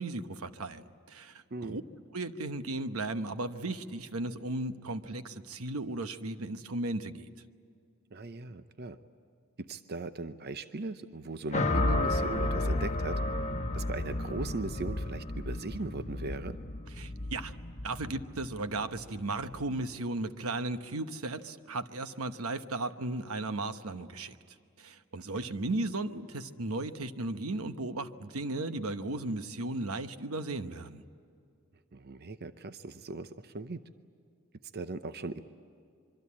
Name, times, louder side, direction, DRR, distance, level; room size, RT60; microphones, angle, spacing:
voice 1, 0.0-1.8 2.1-7.3 17.0-17.5 17.8-24.4 24.8-31.0, right 2 dB, 85° right, 10 dB, 1.1 m, -35 dB
voice 2, 1.5-1.8 8.1-9.0 9.6-13.2 13.7-16.6 25.3-25.5 31.9-33.8 34.7-35.4, right 3 dB, 50° right, 11 dB, 0.7 m, -38 dB
sound 1, 11.5-19.8, left 2 dB, 30° left, 1.1 m, -32 dB
25.5 x 24.0 x 8.6 m, 2.3 s
head